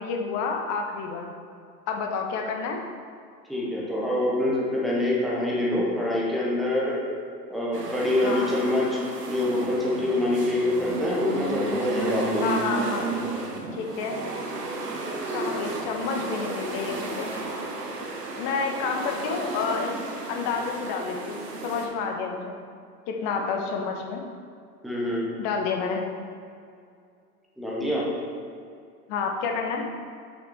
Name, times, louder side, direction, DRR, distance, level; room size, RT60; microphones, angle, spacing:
voice 1, 0.0-1.3 1.9-2.8 8.2-8.5 12.4-13.1 13.7-14.2 15.3-17.4 18.4-20.0 20.3-22.5 23.1-24.2 25.4-26.0 29.1-29.8, left 5 dB, 35° left, 2 dB, 1.2 m, -29 dB
voice 2, 3.5-7.0 7.5-9.0 9.3-12.4 24.8-25.3 27.6-28.0, left 1 dB, ahead, -5 dB, 0.3 m, -25 dB
sound 1, 7.7-21.9, right 3 dB, 75° right, 1.4 m, -33 dB
6.5 x 6.0 x 4.7 m, 2.4 s
figure-of-eight pair, 95°, 48 cm